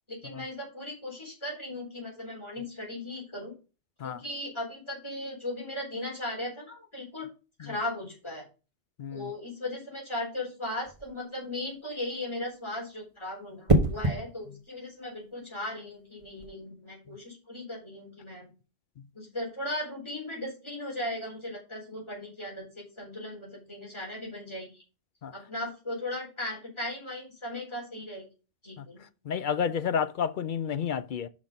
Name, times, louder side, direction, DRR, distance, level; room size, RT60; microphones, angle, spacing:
voice 1, 0.1-3.5 4.0-7.3 7.6-8.5 9.1-18.5 19.1-24.8 25.3-28.3 28.6-29.0, left 1 dB, 25° left, 3.9 m, -37 dB
voice 2, 9.0-9.3 25.2-25.3 28.8-28.9 29.2-31.3, left 7 dB, 55° left, 0.6 m, -30 dB
sound 1, 10.8-11.2 13.7-14.2 16.2-16.5, right 2 dB, 30° right, 1.2 m, -25 dB
6.2 x 5.9 x 5.1 m
omnidirectional pair, 1.2 m